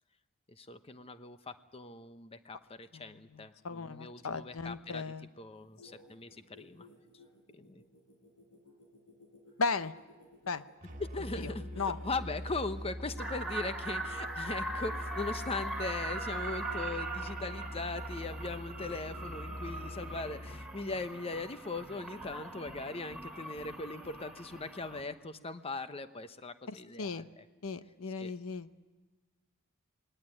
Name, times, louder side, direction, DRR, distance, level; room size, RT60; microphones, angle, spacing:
voice 1, 0.5-6.9 7.5-7.8 11.0-27.4 28.2-28.3, left 3 dB, 25° left, 10 dB, 0.9 m, -40 dB
voice 2, 2.9-5.3 9.6-9.9 10.5-10.6 11.8-12.0 26.7-27.3 27.6-28.7, left 4 dB, 70° left, 13 dB, 0.8 m, -36 dB
sound 1, 5.5-13.3 13.8-15.5 15.9-16.2 16.5-16.8 17.1-18.1 18.5-20.3, left 1 dB, 90° left, 7.1 m, -57 dB
Musical instrument, 10.8-20.7, equal, 35° right, 2.0 m, -43 dB
sound 2, 13.2-25.0, right 2 dB, ahead, 3.4 m, -41 dB
20.0 x 18.0 x 9.8 m, 1.3 s
head